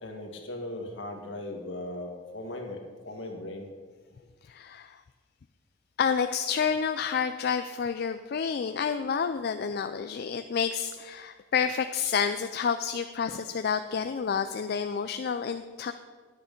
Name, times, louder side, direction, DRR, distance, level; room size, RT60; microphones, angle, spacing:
voice 1, 0.0-3.7, left 1 dB, 70° left, 2 dB, 1.7 m, -38 dB
voice 2, 4.5-5.0 6.0-15.9, left 6 dB, 55° left, 9 dB, 0.4 m, -29 dB
10.5 x 8.7 x 5.3 m, 1.5 s
head